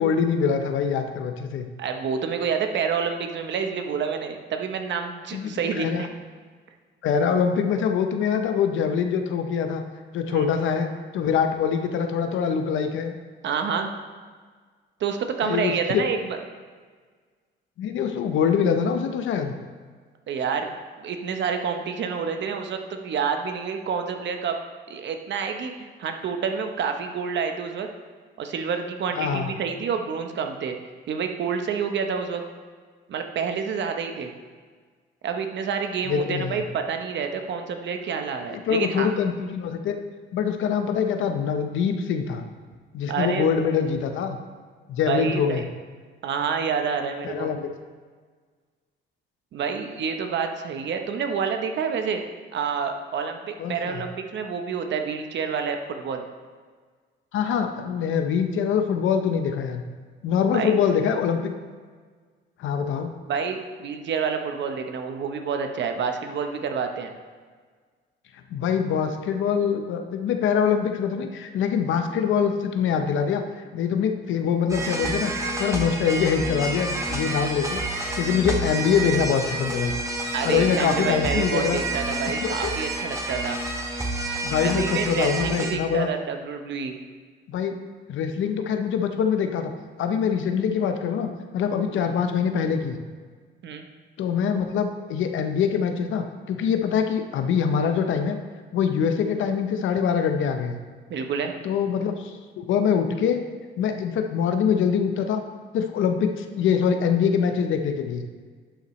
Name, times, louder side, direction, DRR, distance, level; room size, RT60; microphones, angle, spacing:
voice 1, 0.0-1.7 5.3-6.1 7.0-9.8 10.1-13.1 15.4-16.0 17.8-19.5 29.2-29.5 36.0-36.6 38.5-40.0 40.3-42.4 42.9-44.4 44.9-45.6 47.2-47.7 53.6-54.0 57.3-59.8 60.2-61.5 62.6-63.1 68.5-75.3 75.6-77.8 78.1-79.9 80.4-81.8 82.4-82.7 84.4-86.1 87.5-87.7 88.1-89.7 90.0-93.0 94.2-98.4 98.7-100.8 101.6-103.4 103.8-105.4 105.7-108.2, left 7 dB, 75° left, 6 dB, 0.7 m, -24 dB
voice 2, 1.8-6.1 10.3-10.5 13.4-13.9 15.0-16.4 20.3-24.6 24.9-27.9 28.4-30.8 31.1-32.4 33.1-34.3 35.2-39.1 43.1-43.5 45.1-45.6 46.2-47.5 49.5-52.2 52.5-56.3 60.5-60.7 63.3-67.1 80.3-83.6 84.6-87.0 93.6-93.9 101.1-101.5, right 6 dB, 65° right, 5 dB, 0.9 m, -28 dB
sound 1, 74.7-85.7, right 2 dB, 15° right, 1.2 m, -29 dB
11.0 x 5.6 x 3.1 m, 1.5 s
cardioid pair, 90°, 20 cm